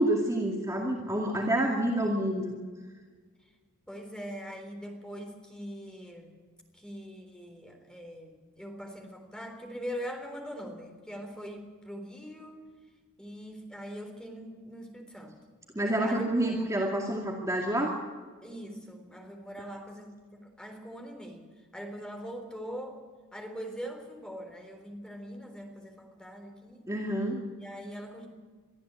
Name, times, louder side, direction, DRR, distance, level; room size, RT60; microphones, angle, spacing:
voice 1, 0.0-2.6 15.7-18.0 26.9-27.4, right 1 dB, 15° right, -1 dB, 2.3 m, -28 dB
voice 2, 3.9-6.3 6.7-12.6 13.2-15.4 16.0-16.5 18.4-23.1 23.3-26.8 27.6-28.3, equal, 5° left, 3 dB, 3.7 m, -42 dB
22.5 x 14.0 x 8.3 m, 1.5 s
head